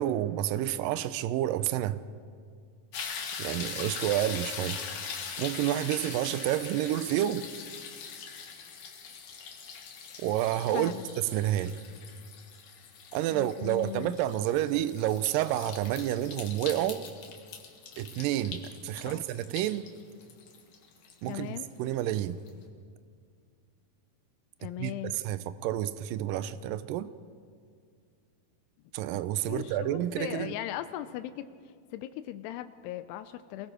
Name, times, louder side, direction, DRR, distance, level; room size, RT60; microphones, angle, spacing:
voice 1, 0.0-2.0 3.4-4.8 5.4-7.5 10.2-10.9 11.3-11.8 13.1-17.1 18.0-19.9 21.2-22.4 24.8-27.1 28.9-30.6, right 13 dB, 85° right, 13 dB, 1.9 m, -29 dB
sound 1, 2.9-22.0 22.5-22.6, left 6 dB, 60° left, 3.0 m, -42 dB
voice 2, 10.7-11.1 13.3-14.2 18.9-19.2 21.3-21.7 24.6-25.1 29.5-31.5 31.9-33.7, left 13 dB, 85° left, 10 dB, 2.7 m, -38 dB
28.0 x 20.0 x 5.0 m, 2.1 s
omnidirectional pair, 4.7 m